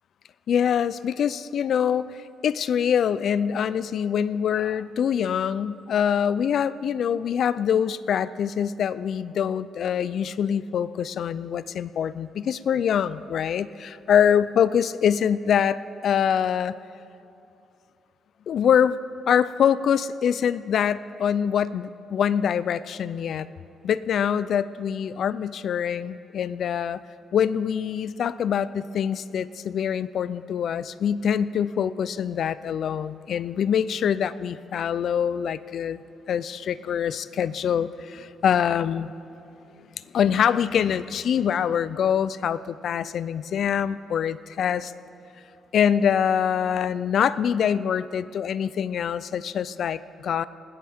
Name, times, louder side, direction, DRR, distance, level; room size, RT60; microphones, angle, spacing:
voice 1, 0.5-2.1 2.4-15.8 16.0-16.8 18.5-19.0 19.3-23.5 23.8-27.0 27.3-36.0 36.3-39.1 40.1-44.9 45.7-50.4, left 8 dB, 65° left, 16 dB, 0.4 m, -24 dB
20.5 x 16.5 x 3.6 m, 2.7 s
cardioid pair, 90°, 0 cm